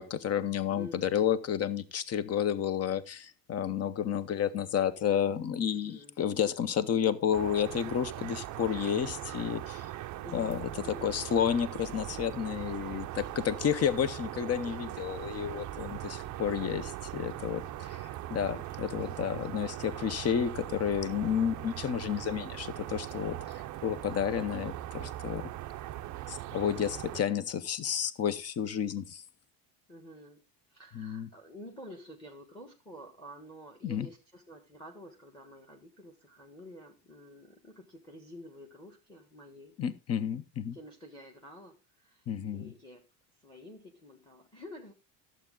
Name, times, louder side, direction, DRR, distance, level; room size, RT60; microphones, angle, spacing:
voice 1, 0.0-9.9 10.3-10.7 11.0-23.4 23.8-25.5 26.3-29.2 30.9-31.3 33.8-34.1 39.8-40.8 42.3-42.7, left 8 dB, 30° left, 0.8 m, -31 dB
voice 2, 0.8-1.2 5.7-6.2 10.2-11.2 13.3-13.5 19.6-19.8 29.9-39.8 40.7-42.2 42.5-43.1 43.4-44.9, equal, 10° left, 1.4 m, -49 dB
sound 1, 7.3-27.2, right 14 dB, 40° right, 0.5 m, -40 dB
11.5 x 7.5 x 3.7 m
cardioid pair, 135°, 48 cm